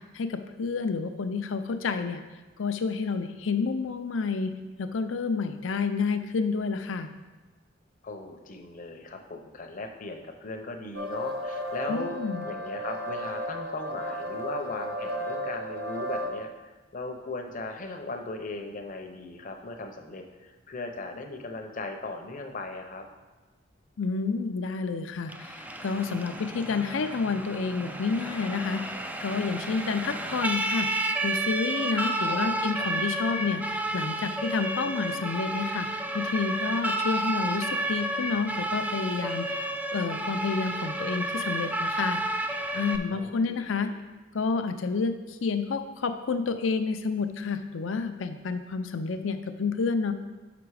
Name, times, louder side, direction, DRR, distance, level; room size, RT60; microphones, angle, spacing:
voice 1, 0.0-2.2 2.6-4.5 4.8-7.1 11.9-12.5 24.0-30.9 31.2-35.9 36.1-42.3 42.7-43.9 44.3-50.1, left 4 dB, 75° left, 8 dB, 0.5 m, -29 dB
voice 2, 8.0-12.2 12.4-16.5 16.9-23.0 32.2-32.7 43.1-43.9, left 2 dB, 45° left, 4 dB, 0.7 m, -38 dB
sound 1, 10.9-16.3, equal, 50° right, 1.0 m, -34 dB
Siren, 25.3-43.0, right 1 dB, 10° right, 0.3 m, -31 dB
6.0 x 6.0 x 4.8 m, 1.2 s
head